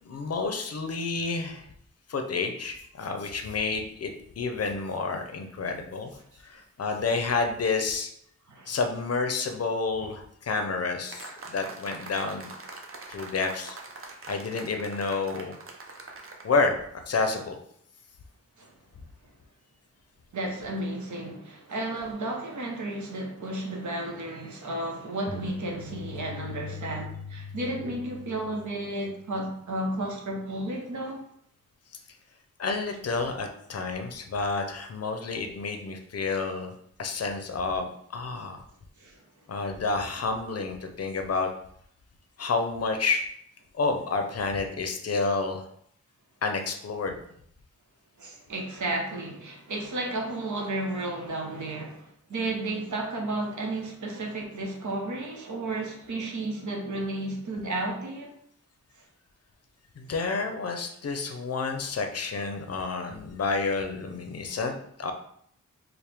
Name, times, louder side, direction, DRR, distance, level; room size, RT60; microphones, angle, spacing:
voice 1, 0.0-1.7 2.1-6.1 6.4-8.1 8.7-12.5 13.1-13.8 14.3-15.6 16.4-17.6 32.6-36.7 37.0-38.6 39.5-41.5 42.4-43.3 43.7-45.6 46.4-47.2 60.0-65.1, left 4 dB, 55° left, 0.5 m, -29 dB
sound 1, 11.1-16.5, right 3 dB, 45° right, 0.5 m, -43 dB
voice 2, 20.3-31.2 39.0-39.1 48.2-58.3 64.5-64.6, right 2 dB, 75° right, 0.8 m, -33 dB
sound 2, 25.3-29.5, left 4 dB, 5° right, 0.6 m, -41 dB
4.4 x 2.1 x 3.4 m
wide cardioid pair, 135°, 30 cm